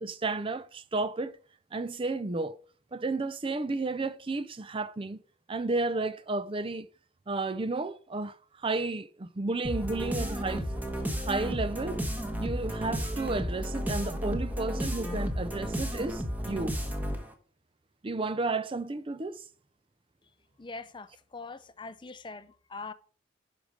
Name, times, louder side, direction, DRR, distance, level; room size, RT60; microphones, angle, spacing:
voice 1, 0.0-1.4 1.7-2.6 2.9-5.2 5.5-6.9 7.3-10.6 11.2-12.0 12.4-16.7 18.0-19.4, right 3 dB, 30° right, 0.5 m, -32 dB
sound 1, 9.6-17.3, equal, 10° right, 1.2 m, -33 dB
voice 2, 20.6-21.1 21.3-22.9, left 3 dB, 25° left, 0.5 m, -42 dB
11.5 x 5.1 x 4.7 m
head